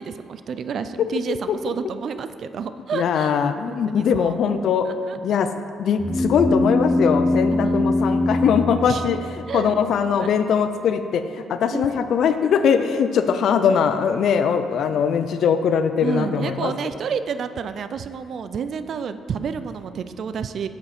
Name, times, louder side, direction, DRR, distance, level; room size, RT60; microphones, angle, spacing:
voice 1, 0.0-3.4 3.7-4.4 4.8-5.2 7.5-8.5 8.8-9.2 9.5-9.8 10.2-10.3 11.7-11.9 16.0-20.7, right 6 dB, 60° right, 11 dB, 0.4 m, -30 dB
voice 2, 2.9-4.9 5.2-5.5 5.8-16.7, left 7 dB, 70° left, 9 dB, 0.5 m, -21 dB
sound 1, 6.0-9.7, left 2 dB, 5° left, 0.5 m, -22 dB
7.7 x 7.1 x 4.3 m, 2.3 s
cardioid pair, 90°, 0 cm